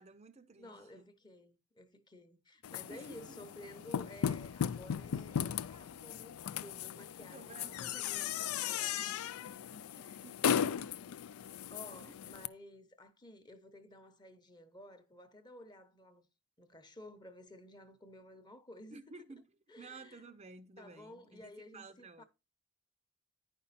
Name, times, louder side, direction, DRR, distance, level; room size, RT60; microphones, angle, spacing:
voice 1, 0.0-1.1 2.9-3.4 7.2-9.0 9.9-10.8 12.1-12.2 18.9-19.5 19.8-22.2, right 3 dB, 30° right, 0.5 m, -54 dB
voice 2, 0.6-9.1 9.5-9.7 11.7-16.2 16.6-19.3 19.7-20.2 20.8-22.2, left 1 dB, 20° left, 0.9 m, -54 dB
sound 1, 2.6-12.5, left 8 dB, 85° left, 0.4 m, -37 dB
10.0 x 5.4 x 4.1 m
head